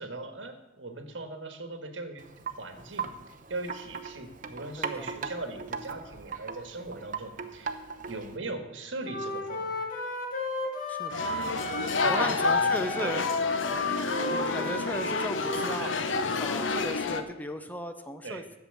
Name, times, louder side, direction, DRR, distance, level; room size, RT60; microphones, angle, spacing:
voice 1, 0.0-2.2 2.6-3.1 3.5-7.7 8.1-9.8 12.0-12.7 13.0-13.2 15.7-16.0 18.2-18.4, right 2 dB, 70° right, 7 dB, 1.6 m, -39 dB
Wind chime, 2.2-8.4, right 5 dB, 45° right, 0.8 m, -39 dB
voice 2, 4.8-5.3 10.9-11.4 12.1-13.3 14.3-18.4, left 1 dB, 10° left, 8 dB, 0.6 m, -36 dB
Wind instrument woodwind instrument, 9.0-15.8, left 2 dB, 45° left, 2.1 m, -32 dB
sound 1, 11.1-17.2, left 4 dB, 75° left, 0.8 m, -30 dB
11.5 x 7.8 x 6.9 m, 1.0 s
head